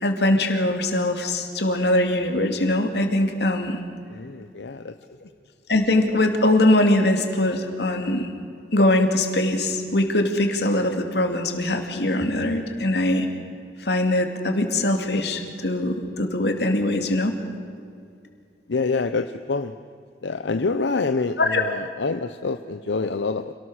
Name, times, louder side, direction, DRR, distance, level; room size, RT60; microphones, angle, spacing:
voice 1, 0.0-3.8 5.7-8.3 8.7-13.3 13.8-17.4 21.4-21.6, left 1 dB, 70° left, 5 dB, 2.6 m, -22 dB
voice 2, 4.1-4.9 18.7-19.7 20.2-23.5, left 4 dB, 90° left, 9 dB, 0.7 m, -26 dB
27.5 x 18.5 x 6.4 m, 2.4 s
head